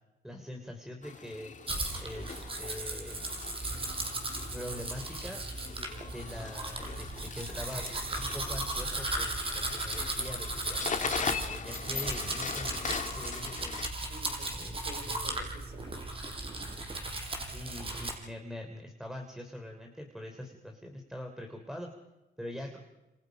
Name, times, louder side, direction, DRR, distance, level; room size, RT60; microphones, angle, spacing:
voice 1, 0.2-1.5 2.0-3.2 4.5-5.4 6.1-7.9 8.2-13.8 14.5-15.4 17.5-21.9 22.4-22.8, left 1 dB, ahead, 3 dB, 3.4 m, -43 dB
sound 1, 1.0-13.9, left 5 dB, 40° left, 1.9 m, -40 dB
Domestic sounds home sounds, 1.7-18.2, right 2 dB, 25° right, 6.1 m, -36 dB
voice 2, 14.1-16.3, right 3 dB, 50° right, 7 dB, 3.8 m, -49 dB
28.0 x 28.0 x 5.3 m, 1.0 s
cardioid pair, 90°, 20 cm